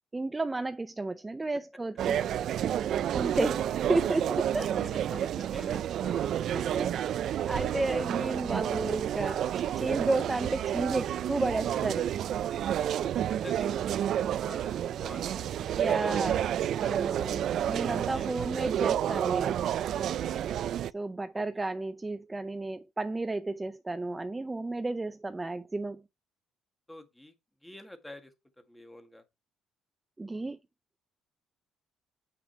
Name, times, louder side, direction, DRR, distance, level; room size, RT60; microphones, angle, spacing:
voice 1, 0.1-2.2 3.1-4.7 6.5-6.9 7.5-12.1 15.8-16.4 16.8-19.6 20.9-26.0 30.2-30.6, right 2 dB, 15° right, 0.6 m, -32 dB
sound 1, 2.0-20.9, right 10 dB, 65° right, 0.4 m, -30 dB
voice 2, 4.6-7.0 12.8-13.8 14.2-16.1 17.9-18.5 18.9-19.0 19.9-20.4 21.3-21.7 26.9-27.3 27.6-28.3 28.7-29.2, left 1 dB, 10° left, 1.7 m, -47 dB
8.5 x 6.0 x 4.5 m
cardioid pair, 115°, 0 cm